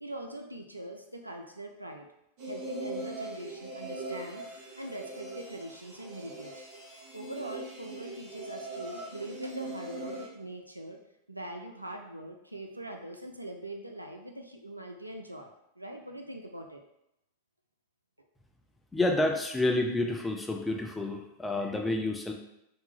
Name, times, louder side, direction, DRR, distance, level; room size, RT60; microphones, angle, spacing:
voice 1, 0.0-2.1 2.5-6.7 7.1-11.0 11.3-15.5 15.8-16.8, right 1 dB, 85° right, 3 dB, 0.3 m, -42 dB
sound 1, 2.4-10.3, right 2 dB, 45° right, 0.8 m, -41 dB
voice 2, 18.9-22.3, left 2 dB, 10° left, 2 dB, 0.4 m, -29 dB
2.6 x 2.2 x 3.2 m, 0.82 s
figure-of-eight pair, 90°, 0 cm